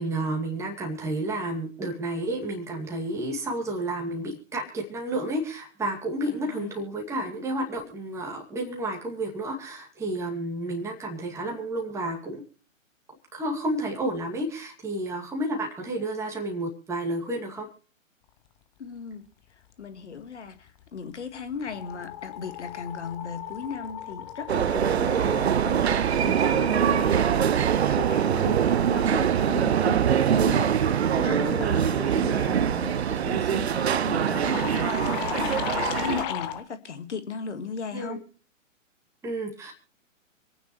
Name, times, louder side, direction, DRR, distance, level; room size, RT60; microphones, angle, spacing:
voice 1, 0.0-12.4 13.3-17.7 25.1-25.3 28.3-28.7 31.5-31.8 37.9-38.2 39.2-39.7, right 1 dB, 5° right, 2.3 m, -31 dB
voice 2, 6.3-6.8 18.8-19.3 19.5-28.6 28.9-38.2, left 5 dB, 60° left, 2.0 m, -37 dB
sound 1, 20.8-21.1 21.4-36.6, left 11 dB, 20° left, 0.8 m, -38 dB
sound 2, 24.5-36.2, right 9 dB, 55° right, 0.6 m, -23 dB
27.0 x 9.3 x 3.1 m
figure-of-eight pair, 125°, 39 cm